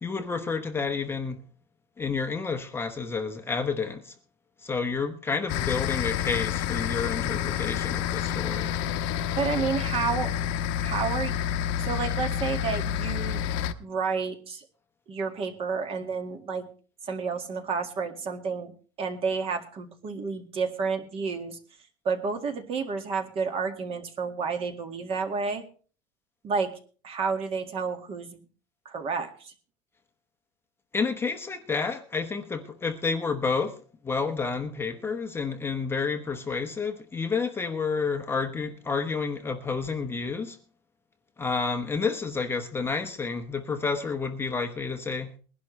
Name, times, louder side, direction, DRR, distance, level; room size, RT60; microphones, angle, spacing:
voice 1, 0.0-1.4 2.0-4.1 4.6-8.8 30.9-33.8 34.0-40.6 41.4-45.4, left 4 dB, 15° left, 0.9 m, -30 dB
sound 1, 5.5-13.7, left 10 dB, 70° left, 1.0 m, -29 dB
voice 2, 9.4-10.3 10.8-11.4 11.8-13.4 13.8-14.7 15.1-16.7 17.0-18.7 19.0-21.6 22.0-25.6 26.4-26.7 27.0-28.4 28.9-29.5, right 5 dB, 35° right, 2.0 m, -30 dB
21.0 x 11.5 x 3.2 m
cardioid pair, 150°, 16 cm